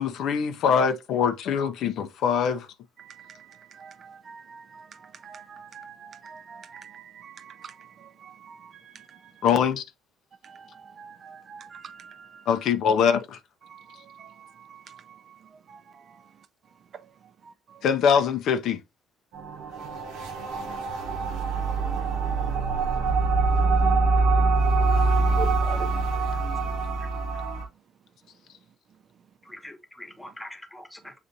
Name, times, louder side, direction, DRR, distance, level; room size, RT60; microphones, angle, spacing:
voice 1, 0.0-2.7 9.4-9.8 12.5-13.4 17.8-18.8, left 7 dB, 70° left, 0.5 m, -23 dB
voice 2, 3.0-9.3 10.4-12.4 13.7-15.4 15.7-16.2 16.9-17.1 17.5-17.8, right 6 dB, 50° right, 0.4 m, -47 dB
sound 1, 19.3-27.6, right 3 dB, 80° right, 1.0 m, -24 dB
voice 3, 25.4-26.1 29.4-31.1, left 2 dB, 10° left, 1.0 m, -40 dB
6.7 x 2.4 x 2.6 m
supercardioid pair, 75°, 0 cm